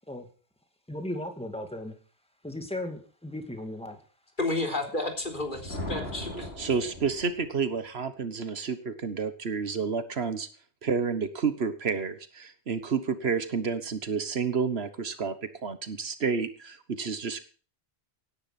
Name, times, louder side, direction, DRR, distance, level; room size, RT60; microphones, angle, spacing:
voice 1, 0.9-1.9 2.4-4.0, left 1 dB, 5° left, 6 dB, 2.3 m, -36 dB
voice 2, 4.4-6.5, left 2 dB, 50° left, 3 dB, 3.9 m, -31 dB
Thunder, 5.2-7.6, left 1 dB, 65° left, 5.0 m, -39 dB
voice 3, 6.6-10.5 10.8-15.3 15.6-17.4, right 5 dB, 70° right, 12 dB, 1.5 m, -30 dB
17.0 x 10.0 x 5.9 m, 0.38 s
omnidirectional pair, 1.1 m